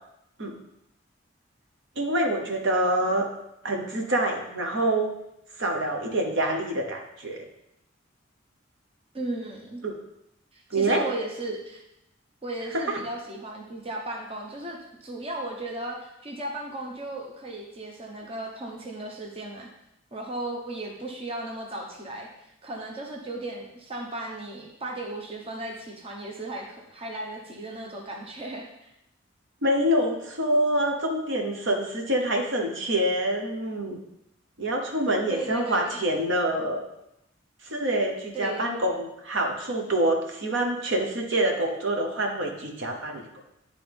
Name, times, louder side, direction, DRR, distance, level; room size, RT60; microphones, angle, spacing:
voice 1, 2.0-3.2 3.6-5.1 5.6-7.5 9.8-9.9 10.7-11.0 12.7-13.0 29.6-34.0 34.6-36.8 37.6-43.4, right 1 dB, 65° right, 2 dB, 1.0 m, -26 dB
voice 2, 9.1-9.8 10.5-11.8 12.4-19.7 20.1-22.3 22.6-28.9 35.3-35.9 38.3-38.6, right 2 dB, 30° right, 0 dB, 0.9 m, -36 dB
10.5 x 3.8 x 3.5 m, 0.83 s
head